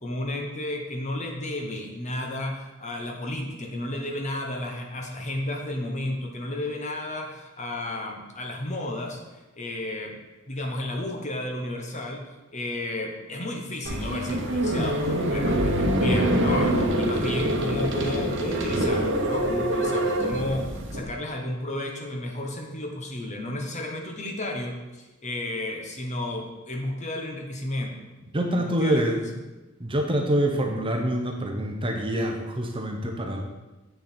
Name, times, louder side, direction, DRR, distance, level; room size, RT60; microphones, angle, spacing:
voice 1, 0.0-9.2 9.5-10.2 10.5-12.3 12.5-28.0 28.5-29.3, left 1 dB, 35° left, 2 dB, 1.0 m, -32 dB
sound 1, 13.8-21.0, right 1 dB, 55° right, 1.1 m, -25 dB
voice 2, 28.3-29.2 29.8-33.4, equal, 25° right, 2 dB, 0.8 m, -26 dB
8.0 x 6.5 x 4.3 m, 1.1 s
head